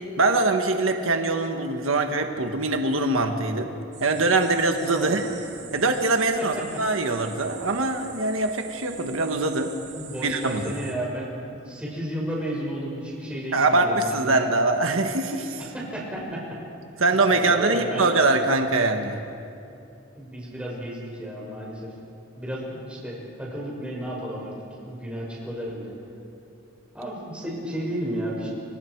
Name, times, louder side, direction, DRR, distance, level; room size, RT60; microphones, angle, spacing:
voice 1, 0.2-3.7 4.0-5.2 5.7-9.7 10.2-10.6 13.5-15.6 17.0-19.2, right 3 dB, 90° right, 5 dB, 1.5 m, -23 dB
sound 1, 3.9-10.9, right 7 dB, 55° right, 3.7 m, -44 dB
voice 2, 4.9-5.4 6.4-6.5 9.9-14.6 15.6-16.6 17.3-18.1 20.1-21.9 22.4-24.5 24.8-25.9 26.9-28.5, right 1 dB, 5° right, -4 dB, 6.1 m, -33 dB
29.0 x 25.5 x 4.7 m, 2.6 s
head